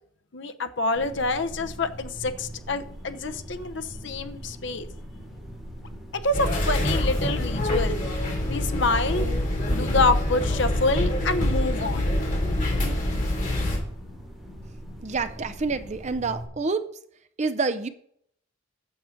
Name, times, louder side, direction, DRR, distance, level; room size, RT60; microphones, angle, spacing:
voice 1, 0.3-4.9 6.1-8.0 8.5-9.2 9.7-12.1, left 3 dB, 60° left, 9 dB, 0.8 m, -27 dB
sound 1, 0.9-16.5, equal, ahead, 3.6 m, -42 dB
sound 2, 6.3-13.8, left 1 dB, 40° left, 2.8 m, -25 dB
voice 2, 15.0-16.8 17.4-17.9, right 4 dB, 35° right, 11 dB, 0.5 m, -27 dB
8.6 x 7.3 x 5.0 m, 0.65 s
head